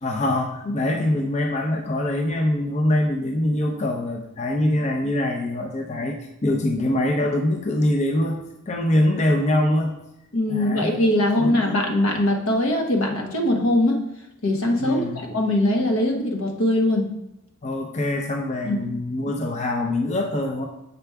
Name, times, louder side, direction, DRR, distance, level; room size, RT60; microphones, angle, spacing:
voice 1, 0.0-8.4 8.7-10.0 10.5-10.9 11.4-11.7 14.8-15.2 17.6-20.7, left 1 dB, 35° left, 2 dB, 0.6 m, -23 dB
voice 2, 10.3-14.0 14.4-15.0 15.3-17.1 18.6-18.8, left 1 dB, 80° left, 2 dB, 1.1 m, -21 dB
6.8 x 4.6 x 3.4 m, 0.85 s
head